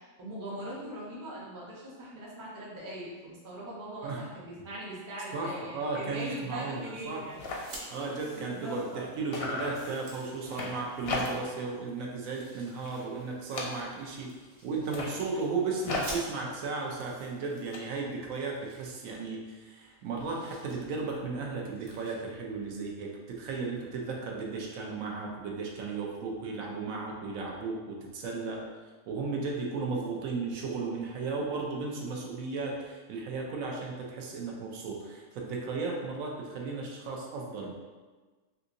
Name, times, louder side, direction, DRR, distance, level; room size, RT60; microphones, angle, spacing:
voice 1, 0.0-7.4 8.1-9.1, right 1 dB, 25° right, -6 dB, 0.4 m, -41 dB
voice 2, 5.3-7.2 7.9-14.3 14.6-28.6 29.1-37.7, right 4 dB, 80° right, -1 dB, 1.0 m, -35 dB
sound 1, 6.2-6.4 6.7-6.8 7.0-9.0 9.3-11.7 12.0-12.4 12.7-14.2 14.7-17.8, left 2 dB, 60° left, 0.7 m, -39 dB
sound 2, 7.5-7.9 9.2-9.3 9.6-11.0 12.1-13.0 14.3-15.2 15.8-16.7 17.6-17.7 17.9-18.0 18.3-19.6 19.9-20.8 21.1-21.3 21.7-22.2, right 1 dB, 55° right, 0.9 m, -48 dB
3.5 x 2.8 x 2.5 m, 1.3 s
omnidirectional pair, 1.4 m